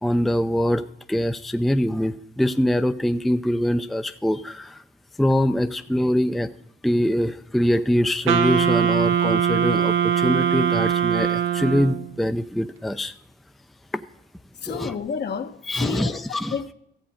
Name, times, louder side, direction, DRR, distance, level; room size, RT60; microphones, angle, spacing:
voice 1, 0.0-0.8 1.1-4.8 5.2-6.5 6.8-13.1 14.7-14.9 15.7-16.5, equal, ahead, 0.5 m, -23 dB
Wind instrument woodwind instrument, 8.3-12.1, right 8 dB, 80° right, 0.9 m, -21 dB
voice 2, 14.6-16.2 16.5-16.7, left 6 dB, 60° left, 1.2 m, -30 dB
14.0 x 7.8 x 5.1 m
cardioid pair, 90°, 20 cm